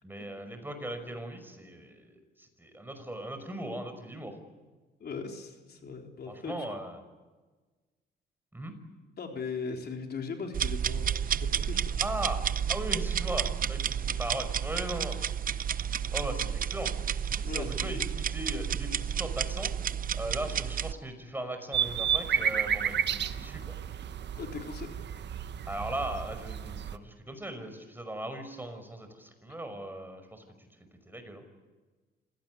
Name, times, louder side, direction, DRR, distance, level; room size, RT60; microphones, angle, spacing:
voice 1, 0.0-4.4 6.3-7.0 8.5-8.7 12.0-15.2 16.1-16.9 17.4-19.7 20.1-23.7 25.7-30.4 31.1-31.4, right 1 dB, 10° right, 7 dB, 5.6 m, -38 dB
voice 2, 5.0-6.7 9.2-12.0 16.2-16.3 17.4-17.9 24.4-24.9, left 5 dB, 55° left, 3 dB, 4.1 m, -39 dB
sound 1, 10.5-20.9, right 8 dB, 45° right, 0.8 m, -31 dB
sound 2, 21.7-27.0, right 8 dB, 60° right, 1.2 m, -32 dB
26.5 x 17.5 x 9.6 m, 1.3 s
cardioid pair, 90°, 20 cm